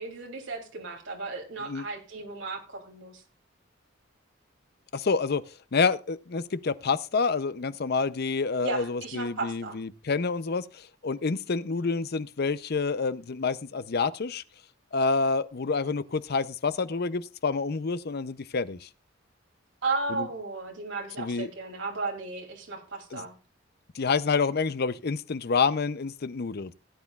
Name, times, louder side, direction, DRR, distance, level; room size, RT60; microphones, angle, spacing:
voice 1, 0.0-3.2 8.6-9.8 19.8-23.3, right 3 dB, 65° right, 2.9 m, -34 dB
voice 2, 4.9-5.4 5.7-14.4 14.9-18.9 20.1-20.3 21.2-21.5 23.1-23.2 24.0-26.7, left 4 dB, 55° left, 0.6 m, -28 dB
17.0 x 9.3 x 2.4 m
head